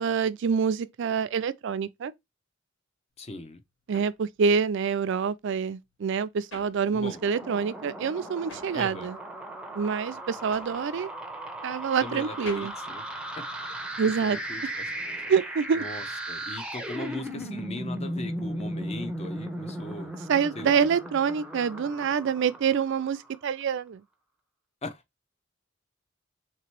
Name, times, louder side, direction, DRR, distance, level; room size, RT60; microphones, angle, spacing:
voice 1, 0.0-2.1 3.9-9.1 9.8-11.1 11.6-12.7 14.0-14.4 15.3-15.8 20.3-24.0, right 6 dB, 65° right, 0.4 m, -26 dB
sound 1, 3.2-7.5 7.7-14.0, left 2 dB, 70° left, 1.8 m, -50 dB
voice 2, 3.2-3.6 6.9-7.2 8.7-9.1 12.0-13.0 13.4-13.5 14.0-15.2 15.7-20.1 20.5-20.8 24.8-25.0, left 2 dB, 35° left, 0.7 m, -39 dB
sound 2, 7.0-23.4, right 1 dB, 5° right, 0.6 m, -37 dB
3.3 x 2.9 x 4.4 m
head